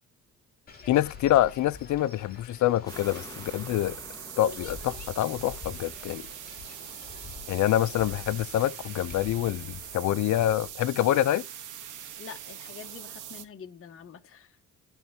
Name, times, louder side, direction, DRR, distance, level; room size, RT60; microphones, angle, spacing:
sound 1, 0.7-10.7, left 5 dB, 30° left, 2.7 m, -47 dB
voice 1, 0.9-4.0 4.4-6.3 7.5-11.4, left 13 dB, 70° left, 0.6 m, -26 dB
sound 2, 2.8-9.5 9.9-10.0, left 3 dB, 10° left, 1.3 m, -51 dB
sound 3, 2.9-13.4, right 10 dB, 80° right, 1.3 m, -42 dB
voice 2, 12.2-14.6, left 7 dB, 45° left, 1.1 m, -46 dB
12.5 x 4.5 x 2.8 m
cardioid pair, 90°, 30 cm